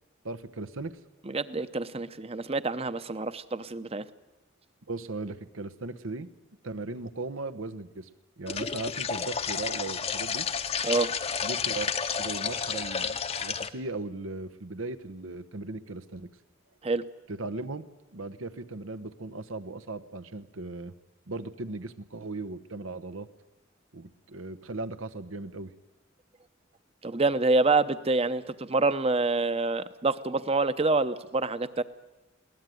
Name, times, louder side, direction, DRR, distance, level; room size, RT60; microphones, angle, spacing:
voice 1, 0.2-1.0 4.9-6.3 6.6-8.1 8.4-10.5 11.4-11.9 12.2-16.3 17.3-17.9 18.1-20.9 21.3-23.3 23.9-25.7, right 2 dB, 90° right, 13 dB, 1.1 m, -37 dB
voice 2, 1.2-4.0 10.8-11.1 16.8-17.0 27.0-31.8, right 3 dB, 30° right, 13 dB, 0.8 m, -27 dB
sound 1, 8.5-13.7, left 6 dB, 30° left, 0.8 m, -31 dB
21.5 x 18.0 x 9.3 m, 1.0 s
head